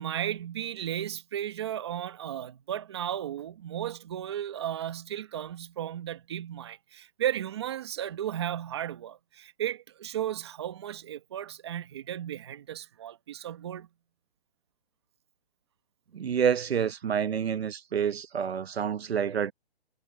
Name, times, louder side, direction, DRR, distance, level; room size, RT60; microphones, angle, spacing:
voice 1, 0.0-13.9, right 11 dB, 25° right, 1.2 m, -34 dB
voice 2, 16.1-19.5, right 7 dB, 75° right, 1.2 m, -28 dB
hypercardioid pair, 175°, 31 cm